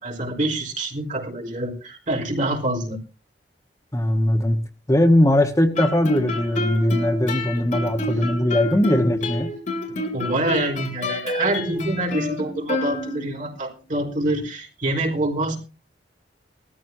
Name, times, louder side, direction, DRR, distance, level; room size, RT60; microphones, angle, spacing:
voice 1, 0.0-3.0 8.1-8.2 10.0-15.6, right 1 dB, 50° right, 2 dB, 4.2 m, -26 dB
voice 2, 3.9-4.6 4.9-9.5, left 1 dB, 20° left, 5 dB, 1.4 m, -20 dB
Guitar, 5.8-13.5, left 2 dB, 45° left, 3.1 m, -29 dB
20.0 x 14.0 x 2.8 m, 0.33 s
head